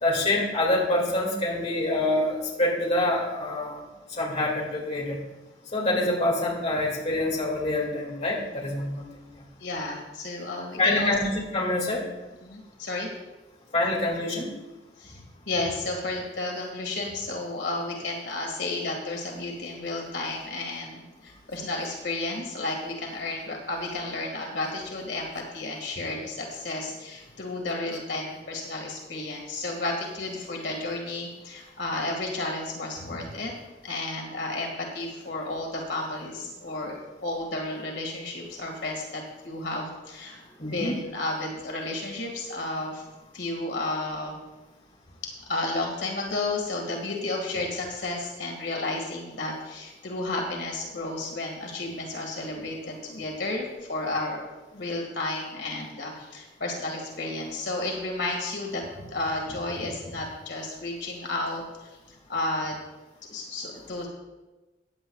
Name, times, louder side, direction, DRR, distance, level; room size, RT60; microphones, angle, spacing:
voice 1, 0.0-3.8 4.2-5.2 5.7-9.0 10.8-12.0 13.7-14.5 40.6-40.9, left 1 dB, 40° left, -2 dB, 2.2 m, -26 dB
voice 2, 9.6-11.1 12.4-13.1 15.0-33.5 33.8-43.1 43.3-44.4 45.5-54.4 54.7-62.0 62.3-62.8 63.3-64.1, left 2 dB, 80° left, 0 dB, 2.0 m, -32 dB
15.0 x 9.7 x 2.4 m, 1.1 s
head